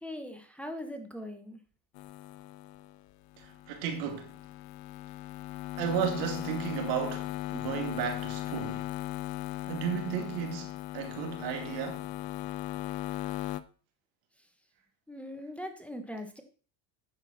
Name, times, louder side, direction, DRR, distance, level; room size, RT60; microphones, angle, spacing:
voice 1, 0.0-1.6 15.1-16.4, left 1 dB, 5° left, 1.4 m, -40 dB
sound 1, 2.0-13.6, left 16 dB, 70° left, 0.8 m, -38 dB
voice 2, 3.4-4.4 5.8-8.9 9.7-12.1, right 8 dB, 85° right, 2.6 m, -34 dB
10.0 x 7.0 x 4.3 m
supercardioid pair, 110°, 49 cm